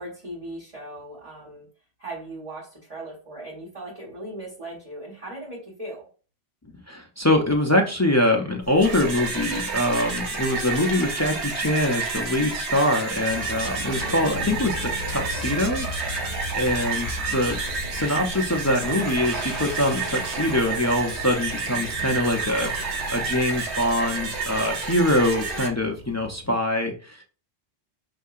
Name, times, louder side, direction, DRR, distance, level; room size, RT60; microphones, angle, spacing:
voice 1, 0.0-1.7 2.0-6.1, right 1 dB, 30° right, -8 dB, 1.5 m, -38 dB
voice 2, 6.9-16.3 16.5-17.6 17.9-27.2, left 1 dB, 25° left, 1 dB, 0.3 m, -24 dB
sound 1, 8.6-25.7, right 4 dB, 75° right, 1.1 m, -30 dB
sound 2, 13.3-26.5, left 3 dB, 70° left, 0.8 m, -38 dB
5.8 x 2.7 x 2.4 m, 0.37 s
omnidirectional pair, 1.2 m